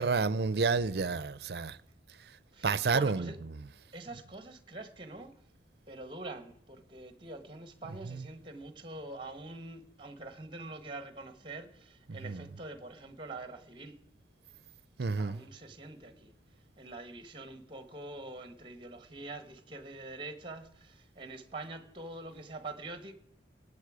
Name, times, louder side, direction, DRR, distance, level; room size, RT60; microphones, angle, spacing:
voice 1, 0.0-1.8 2.6-3.3 8.1-8.2 12.2-12.4 15.0-15.4, right 4 dB, 60° right, 0.6 m, -30 dB
voice 2, 2.5-3.4 3.9-5.3 5.9-14.0 15.2-16.3 16.8-23.1, right 2 dB, 25° right, 1.2 m, -45 dB
20.0 x 8.6 x 4.9 m
head